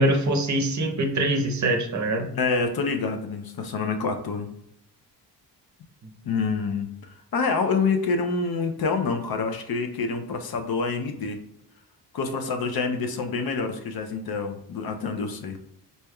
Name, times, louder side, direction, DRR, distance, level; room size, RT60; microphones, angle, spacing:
voice 1, 0.0-2.3, right 1 dB, 40° right, 3 dB, 0.6 m, -23 dB
voice 2, 2.4-4.5 6.2-6.9 7.3-11.4 12.1-15.6, left 4 dB, 55° left, 5 dB, 0.6 m, -27 dB
4.1 x 3.3 x 2.3 m, 0.72 s
cardioid pair, 100°, 44 cm